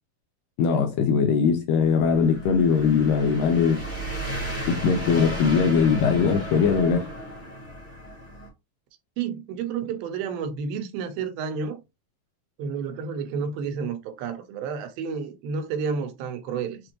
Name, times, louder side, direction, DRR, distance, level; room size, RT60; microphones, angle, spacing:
voice 1, 0.6-3.8 4.7-7.1, left 6 dB, 80° left, 2.2 m, -21 dB
sound 1, 1.8-8.5, equal, 10° left, 0.7 m, -34 dB
voice 2, 9.2-11.8 12.6-16.8, right 6 dB, 90° right, 2.6 m, -30 dB
6.3 x 2.6 x 2.9 m
omnidirectional pair, 4.1 m